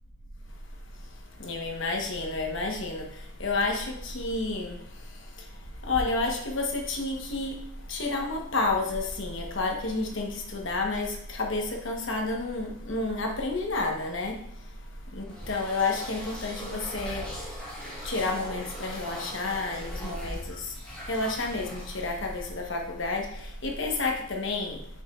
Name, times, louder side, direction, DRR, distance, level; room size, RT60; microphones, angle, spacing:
voice 1, 1.4-3.0 3.4-4.8 5.9-7.5 7.9-14.3 15.1-17.3 18.0-20.7 21.1-23.3 23.6-24.8, left 3 dB, 60° left, 2 dB, 1.1 m, -30 dB
sound 1, 15.2-22.9, equal, 5° left, 1.7 m, -42 dB
7.0 x 5.7 x 2.5 m, 0.71 s
head